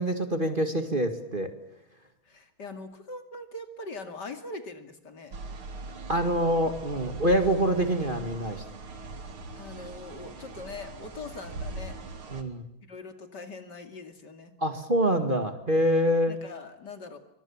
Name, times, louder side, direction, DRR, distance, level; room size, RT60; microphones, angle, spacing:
voice 1, 0.0-1.5 6.1-8.6 12.3-12.6 14.6-16.4, equal, 25° right, 7 dB, 2.2 m, -25 dB
voice 2, 2.3-5.4 9.5-11.9 12.9-14.5 16.3-17.2, left 3 dB, 55° left, 7 dB, 3.0 m, -42 dB
sound 1, 5.3-12.4, right 3 dB, 90° right, 3.2 m, -41 dB
26.5 x 24.5 x 7.3 m, 0.76 s
omnidirectional pair, 2.3 m